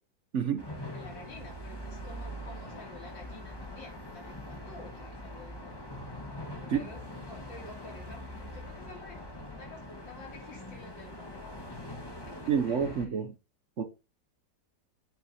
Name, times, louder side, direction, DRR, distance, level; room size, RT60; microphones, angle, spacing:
voice 1, 0.3-0.7 6.7-6.8 12.5-13.3 13.8-13.9, right 7 dB, 55° right, 0.8 m, -28 dB
sound 1, 0.6-13.1, left 1 dB, 15° left, 1.6 m, -43 dB
voice 2, 0.9-5.8 6.6-11.4 11.7-12.0 12.3-12.4 12.6-13.1, left 3 dB, 80° left, 3.6 m, -50 dB
9.4 x 7.9 x 2.9 m
omnidirectional pair, 2.0 m